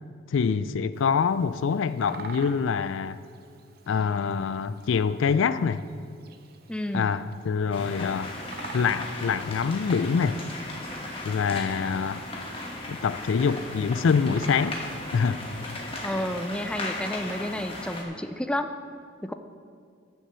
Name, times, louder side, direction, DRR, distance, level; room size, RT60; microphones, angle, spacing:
voice 1, 0.3-3.2 3.9-5.8 6.9-8.3 8.7-10.4 11.2-12.2 12.9-14.8 15.1-15.4, left 6 dB, 75° left, 0.4 m, -25 dB
Bird vocalization bird call bird song, 0.9-17.5, right 4 dB, 50° right, 0.7 m, -48 dB
voice 2, 6.7-7.1 16.0-18.7 19.2-19.3, left 1 dB, 5° left, 0.3 m, -31 dB
sound 1, 7.7-18.0, left 2 dB, 30° left, 1.3 m, -37 dB
9.4 x 6.6 x 6.8 m
head